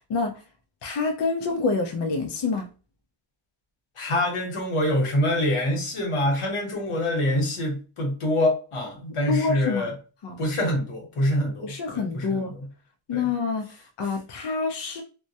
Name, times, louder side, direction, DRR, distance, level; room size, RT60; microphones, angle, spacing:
voice 1, 0.8-2.7 9.3-9.9 10.2-10.4 11.6-12.5 13.1-15.0, left 4 dB, 60° left, 3 dB, 0.5 m, -27 dB
voice 2, 4.0-9.9 10.4-12.6 13.1-13.3, left 1 dB, 85° left, 1 dB, 1.0 m, -25 dB
2.2 x 2.1 x 2.6 m, 0.35 s
wide cardioid pair, 95°, 49 cm